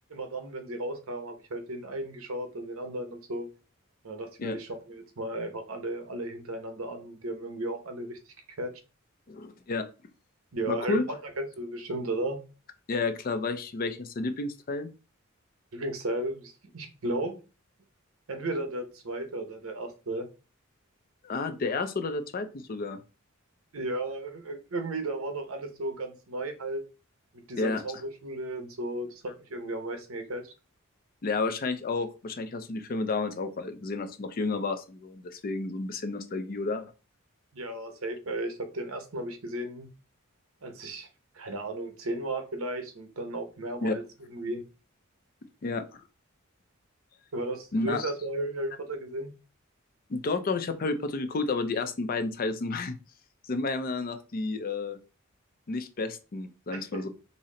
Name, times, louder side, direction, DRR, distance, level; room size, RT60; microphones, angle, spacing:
voice 1, 0.1-3.5 4.0-8.2 8.6-8.7 10.5-12.4 15.7-17.4 18.3-20.3 23.7-26.8 27.3-30.4 37.5-39.9 40.6-41.1 41.3-44.0 44.3-44.6 47.3-49.3 56.7-57.1, right 1 dB, 75° right, 6 dB, 0.8 m, -34 dB
voice 2, 9.3-9.9 10.7-11.0 12.9-14.9 21.2-23.0 27.6-27.8 31.2-36.9 43.8-43.9 45.6-46.0 47.7-48.1 50.1-53.0 53.5-55.0 55.7-57.1, left 3 dB, 40° left, 9 dB, 0.4 m, -31 dB
4.2 x 2.0 x 3.7 m, 0.32 s
head